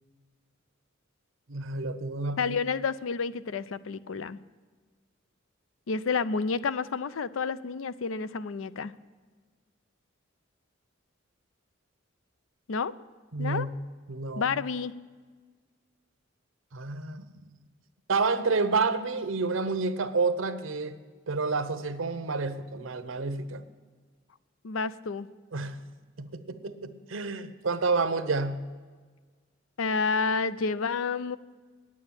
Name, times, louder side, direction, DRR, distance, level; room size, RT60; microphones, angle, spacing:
voice 1, 1.5-2.6 13.3-13.7 14.1-14.6 16.7-17.4 18.1-21.0 21.3-23.6 25.5-25.8 26.2-28.6, right 4 dB, 75° right, 11 dB, 0.8 m, -29 dB
voice 2, 2.4-4.4 5.9-8.9 12.7-12.9 13.4-13.7 14.4-14.9 24.6-25.3 29.8-31.4, left 5 dB, 85° left, 15 dB, 0.5 m, -29 dB
9.8 x 8.6 x 8.8 m, 1.5 s
head